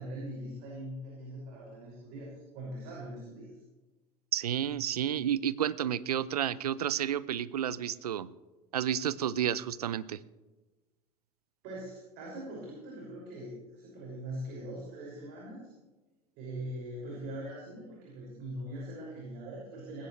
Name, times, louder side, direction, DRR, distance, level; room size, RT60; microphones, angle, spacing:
voice 1, 0.0-3.5 11.6-15.7 16.4-20.1, right 1 dB, 55° right, -4 dB, 6.0 m, -42 dB
voice 2, 4.3-8.3 8.7-10.2, right 10 dB, 75° right, 18 dB, 0.6 m, -31 dB
19.5 x 16.0 x 3.2 m, 1.2 s
figure-of-eight pair, 75°, 20 cm